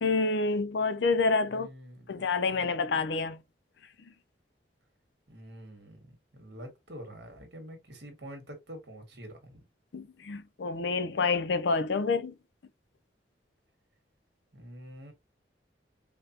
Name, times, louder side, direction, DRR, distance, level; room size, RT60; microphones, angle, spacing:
voice 1, 0.0-1.7 2.1-3.4 9.9-12.3, left 4 dB, 75° left, 0.5 m, -28 dB
voice 2, 1.5-3.1 5.3-9.6 14.5-15.1, equal, 70° right, 1.6 m, -47 dB
5.0 x 2.2 x 2.8 m
head